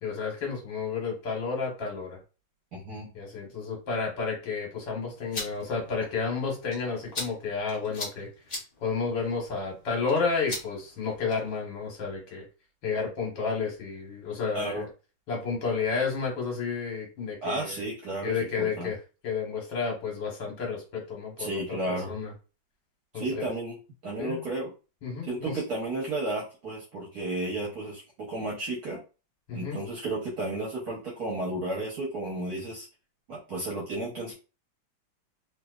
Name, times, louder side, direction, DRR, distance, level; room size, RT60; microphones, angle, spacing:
voice 1, 0.0-2.2 3.1-8.3 8.8-12.4 12.8-14.9 15.3-17.8 18.2-19.0 19.2-22.3 23.1-23.5 24.2-24.4 25.0-25.6 29.5-29.8, left 5 dB, 70° left, -1 dB, 1.9 m, -31 dB
voice 2, 2.7-3.1 14.5-14.8 17.4-18.9 21.4-22.1 23.1-23.8 24.0-24.7 25.2-28.0 28.3-29.0 29.5-32.9 33.3-34.3, right 2 dB, 60° right, -4 dB, 1.3 m, -33 dB
sound 1, 5.1-11.6, left 2 dB, 30° left, 1.1 m, -41 dB
3.3 x 3.2 x 2.3 m, 0.33 s
omnidirectional pair, 2.1 m